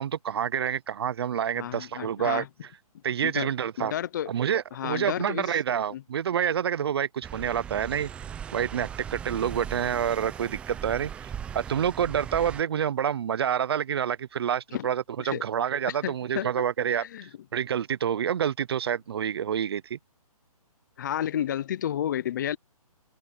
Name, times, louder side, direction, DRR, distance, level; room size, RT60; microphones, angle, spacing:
voice 1, 0.0-2.4 3.0-3.9 4.3-8.1 8.5-17.0 17.5-20.0, right 9 dB, 40° right, 0.7 m, -28 dB
voice 2, 1.5-2.5 2.9-3.5 3.8-4.3 4.7-5.6 5.9-6.0 14.7-14.9 15.2-15.4 15.9-16.5 16.9-17.3 21.0-22.6, left 10 dB, 30° left, 0.8 m, -31 dB
sound 1, 7.2-12.6, right 8 dB, 5° right, 0.7 m, -39 dB
hypercardioid pair, 165°, 19 cm